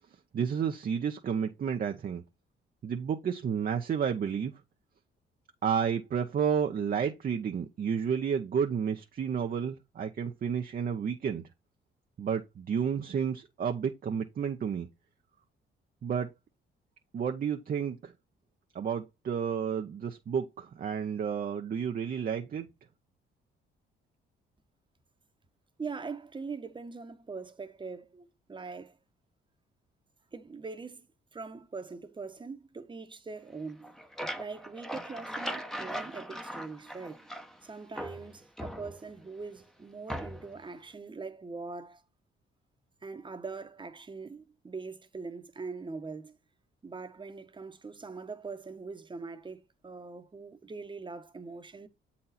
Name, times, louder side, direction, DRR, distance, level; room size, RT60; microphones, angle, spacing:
voice 1, 0.3-2.2 2.8-4.5 5.6-11.4 12.2-14.9 16.0-16.3 17.1-18.1 18.7-22.7, right 7 dB, 45° right, 0.8 m, -31 dB
voice 2, 25.8-29.0 30.3-31.1 31.3-34.0 34.4-37.3 37.6-42.0 43.0-46.4 46.8-51.9, right 4 dB, 25° right, 1.1 m, -42 dB
sound 1, 33.7-37.6 38.0-39.3 40.1-40.6, equal, ahead, 0.9 m, -39 dB
7.5 x 4.2 x 4.1 m
cardioid pair, 90°, 20 cm